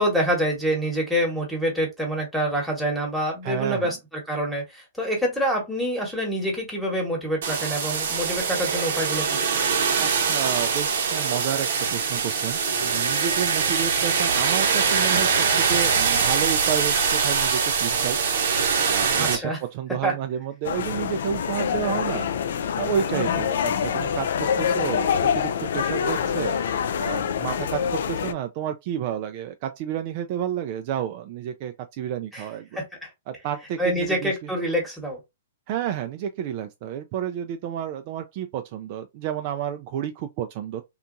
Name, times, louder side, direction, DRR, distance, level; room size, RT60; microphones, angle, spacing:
voice 1, 0.0-4.0 4.3-9.6 19.2-19.6 20.0-20.1 23.1-23.4 32.3-32.4 32.7-33.1 33.8-35.2, equal, ahead, 1.1 m, -26 dB
voice 2, 3.4-3.9 10.0-18.2 18.8-22.3 22.8-26.6 27.0-32.8 33.3-34.5 35.7-40.8, right 9 dB, 45° right, 0.3 m, -30 dB
sound 1, 7.4-19.4, right 6 dB, 65° right, 0.8 m, -23 dB
sound 2, 20.6-28.3, left 7 dB, 65° left, 0.3 m, -25 dB
2.8 x 2.2 x 2.5 m
hypercardioid pair, 135°, 0 cm